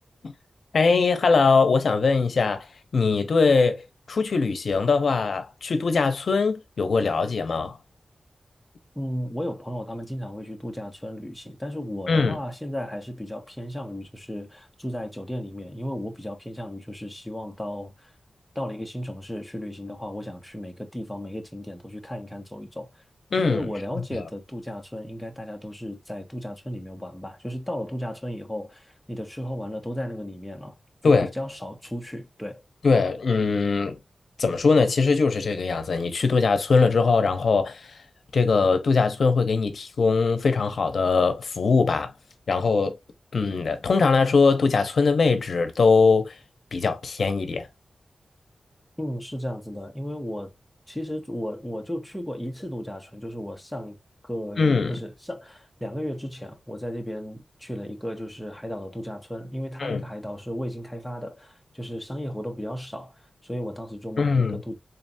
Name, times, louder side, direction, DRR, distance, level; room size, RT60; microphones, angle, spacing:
voice 1, 0.7-2.7 2.9-7.8 12.1-12.4 23.3-23.7 24.1-24.2 31.0-31.3 32.8-34.0 34.4-38.0 38.3-42.1 42.5-43.0 43.3-46.3 46.7-47.7 54.6-54.9 59.8-60.0 64.2-64.6, left 4 dB, 70° left, 0.7 m, -21 dB
voice 2, 9.0-18.1 18.5-23.0 23.4-30.8 31.0-32.6 49.0-50.5 50.9-54.0 54.2-64.7, equal, 5° left, 0.9 m, -34 dB
4.0 x 3.2 x 2.7 m
wide cardioid pair, 135°, 0 cm